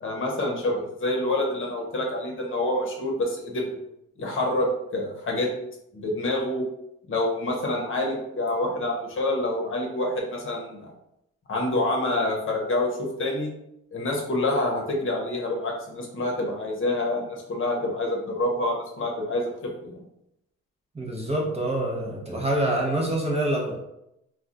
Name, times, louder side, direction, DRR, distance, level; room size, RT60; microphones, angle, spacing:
voice 1, 0.0-3.7 4.2-5.5 5.9-6.6 7.1-10.9 11.5-13.5 13.9-20.0, left 1 dB, 45° left, -1 dB, 0.9 m, -27 dB
voice 2, 20.9-23.8, right 1 dB, 20° right, -1 dB, 0.7 m, -26 dB
2.3 x 2.3 x 3.9 m, 0.83 s
cardioid pair, 90°, 30 cm